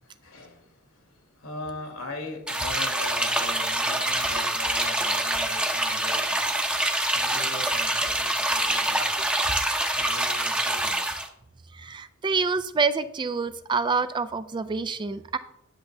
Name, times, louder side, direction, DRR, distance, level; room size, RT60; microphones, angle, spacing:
voice 1, 0.0-11.2, left 2 dB, 70° left, 3 dB, 1.9 m, -41 dB
sound 1, 2.5-11.3, right 1 dB, 5° right, 0.7 m, -25 dB
voice 2, 11.7-15.4, right 4 dB, 20° right, 12 dB, 0.3 m, -27 dB
10.5 x 6.6 x 3.3 m, 0.76 s
head